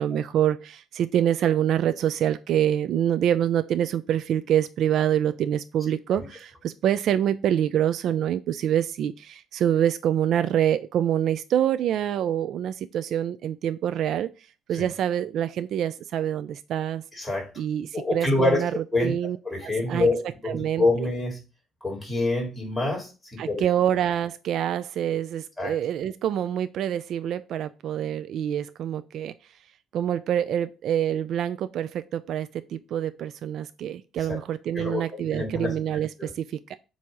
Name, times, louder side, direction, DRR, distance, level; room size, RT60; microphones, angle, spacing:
voice 1, 0.0-14.3 14.7-17.0 17.6-18.7 19.0-19.4 19.6-20.1 20.5-20.8 23.4-29.3 29.9-36.8, right 10 dB, 60° right, 0.3 m, -26 dB
voice 2, 17.1-17.5 17.9-18.6 18.9-19.2 19.4-21.4 21.8-23.7 25.6-25.7 34.2-34.4 34.7-35.7 36.2-36.3, left 2 dB, 5° left, 2.3 m, -26 dB
7.5 x 2.8 x 4.8 m
cardioid pair, 150°, 0 cm